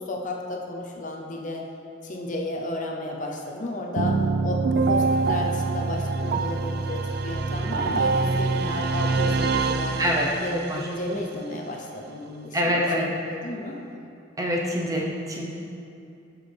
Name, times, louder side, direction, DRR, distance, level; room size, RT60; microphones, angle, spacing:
voice 1, 0.0-1.7 2.0-10.0 10.4-13.8, left 1 dB, 40° left, 0 dB, 0.7 m, -33 dB
sound 1, 4.0-10.7, right 3 dB, 50° right, 0.4 m, -25 dB
voice 2, 10.0-10.3 10.7-10.8 12.5-13.1 14.4-15.4, equal, 15° right, -2 dB, 0.9 m, -25 dB
12.0 x 6.1 x 3.5 m, 2.6 s
head